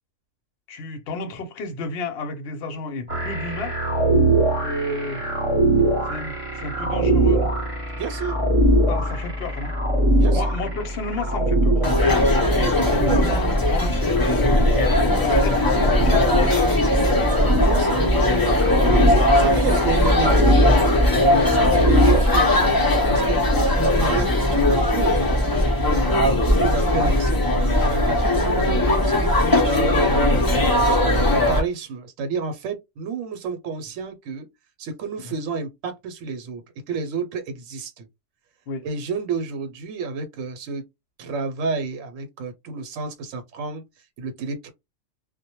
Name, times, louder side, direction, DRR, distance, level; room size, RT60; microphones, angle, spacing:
voice 1, 0.7-3.8 4.6-5.2 6.1-7.5 8.9-9.7 10.3-11.8 12.6-16.8 18.9-19.2 23.0-23.2 23.5-23.7 38.7-38.8, left 3 dB, 60° left, 0.8 m, -32 dB
sound 1, 3.1-22.2, right 1 dB, 30° right, 0.8 m, -22 dB
voice 2, 8.0-8.4 10.2-10.6 12.3-13.3 17.6-18.1 18.8-25.2 25.8-30.3 30.8-34.5 34.8-36.6 36.9-38.1 38.8-40.8 41.2-43.8 44.2-44.7, right 5 dB, 85° right, 1.0 m, -31 dB
sound 2, 11.8-31.6, left 1 dB, 30° left, 0.4 m, -19 dB
2.1 x 2.1 x 2.9 m
omnidirectional pair, 1.3 m